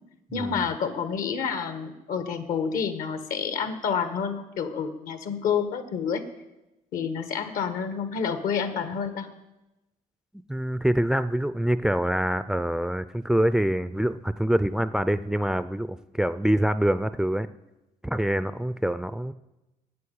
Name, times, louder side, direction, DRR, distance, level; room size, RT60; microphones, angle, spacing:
voice 1, 0.3-6.2 6.9-9.3, left 6 dB, 70° left, 10 dB, 1.4 m, -29 dB
voice 2, 10.5-17.5 18.0-19.3, right 1 dB, 5° right, 14 dB, 0.4 m, -25 dB
9.5 x 8.3 x 8.7 m, 0.98 s
cardioid pair, 105°, 15 cm